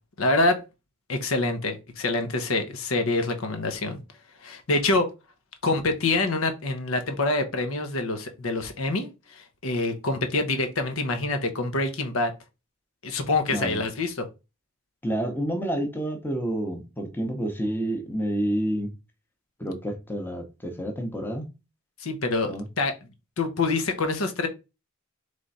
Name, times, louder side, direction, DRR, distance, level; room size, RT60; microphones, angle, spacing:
voice 1, 0.2-0.6 1.1-4.0 4.4-5.1 5.6-12.3 13.0-14.1 22.0-22.9 23.4-24.5, left 2 dB, 70° left, 0.9 m, -26 dB
voice 2, 13.5-13.8 15.0-18.9 19.6-21.5 22.4-22.7, right 1 dB, 10° left, 0.8 m, -29 dB
3.7 x 3.3 x 4.0 m
head